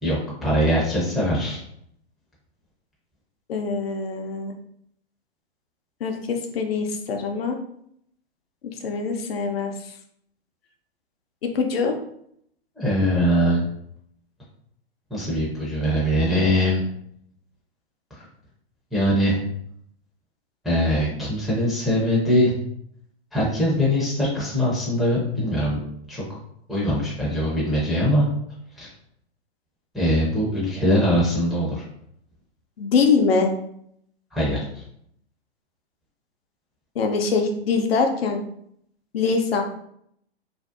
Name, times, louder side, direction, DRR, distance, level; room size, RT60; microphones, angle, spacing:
voice 1, 0.0-1.6 12.8-13.6 15.1-16.8 18.1-18.2 18.9-19.4 20.6-22.5 23.3-25.8 26.1-26.2 26.7-28.2 28.8-28.9 29.9-31.8 34.3-34.8, equal, ahead, -7 dB, 0.4 m, -22 dB
voice 2, 3.5-4.5 6.0-7.6 8.8-9.7 11.4-12.0 32.8-33.5 37.0-38.4 39.1-39.6, left 4 dB, 65° left, 4 dB, 0.5 m, -23 dB
2.6 x 2.0 x 2.4 m, 0.70 s
figure-of-eight pair, 115°, 32 cm